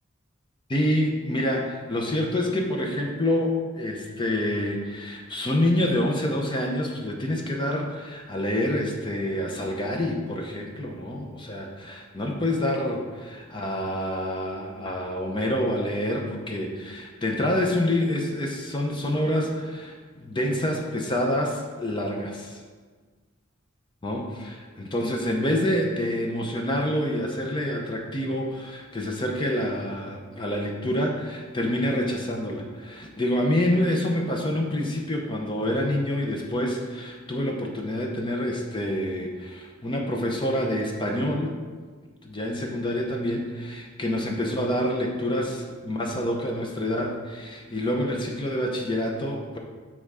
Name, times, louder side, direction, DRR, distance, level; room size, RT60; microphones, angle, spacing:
voice 1, 0.7-22.6 24.0-41.5 42.2-49.6, left 1 dB, 25° left, 1 dB, 0.7 m, -27 dB
7.8 x 3.6 x 4.8 m, 1.5 s
head